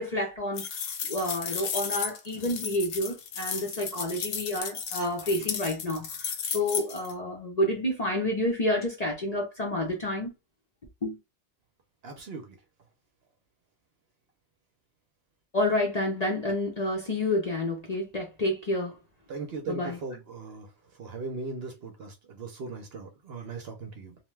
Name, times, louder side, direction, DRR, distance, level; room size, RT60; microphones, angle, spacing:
voice 1, 0.0-10.3 11.0-11.2 15.5-19.0 19.7-20.0, left 1 dB, 40° left, 0.6 m, -29 dB
sound 1, 0.6-7.1, left 7 dB, 70° left, 1.0 m, -34 dB
voice 2, 12.0-12.6 19.3-20.7 21.0-24.1, right 4 dB, 60° right, 0.8 m, -38 dB
2.7 x 2.2 x 3.1 m
omnidirectional pair, 1.3 m